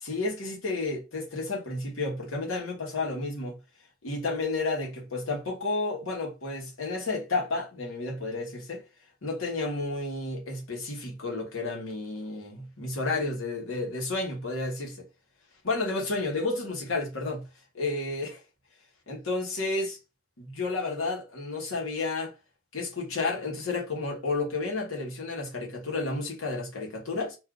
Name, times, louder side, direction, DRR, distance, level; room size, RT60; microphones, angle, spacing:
voice 1, 0.0-3.6 4.0-8.8 9.2-15.0 15.6-17.5 17.7-18.4 19.1-20.0 20.4-22.3 22.7-27.4, left 3 dB, 65° left, 1.2 m, -31 dB
2.6 x 2.4 x 3.7 m
head